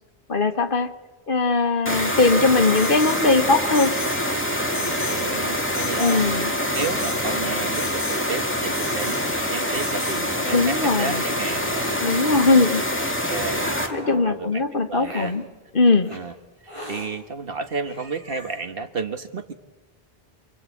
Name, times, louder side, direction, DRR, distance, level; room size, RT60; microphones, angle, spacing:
voice 1, 0.3-0.9 1.3-3.9 6.0-6.5 10.5-11.2 12.0-12.8 13.9-15.4 15.7-16.1, left 3 dB, 55° left, 8 dB, 1.5 m, -20 dB
sound 1, 1.9-13.9, equal, 10° left, 2.2 m, -25 dB
Alarm, 2.7-3.2 3.7-4.2 4.7-5.2 5.7-6.2 6.7-7.2 7.7-8.2 8.7-9.2 9.7-10.2, left 2 dB, 5° right, 3.4 m, -35 dB
Hiss, 3.6-4.9 5.8-6.4 7.4-7.5 8.3-8.4 9.0-10.0 10.8-12.0 12.9-14.4 15.0-15.3 16.0-16.2 16.6-17.1 17.6-17.7 17.8-18.6, equal, 30° right, 7.3 m, -39 dB
voice 2, 4.7-6.2 6.7-11.7 13.0-13.8 14.0-14.6 14.9-15.3 16.1-16.3 16.9-19.5, right 4 dB, 65° right, 7 dB, 1.6 m, -32 dB
28.5 x 23.0 x 8.5 m, 1.2 s
omnidirectional pair, 1.0 m